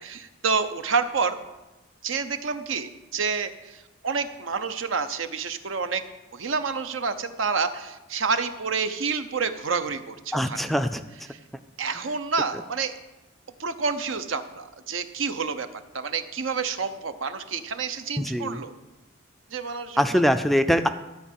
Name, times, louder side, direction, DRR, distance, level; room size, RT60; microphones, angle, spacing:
voice 1, 0.0-1.4 2.0-6.0 6.3-10.6 11.3-11.4 11.8-12.9 13.6-15.7 15.9-18.7 19.5-20.2, right 5 dB, 80° right, 10 dB, 0.7 m, -28 dB
voice 2, 10.3-11.0 18.2-18.6 20.0-20.9, equal, ahead, 9 dB, 0.3 m, -22 dB
13.0 x 4.6 x 8.5 m, 1.1 s
head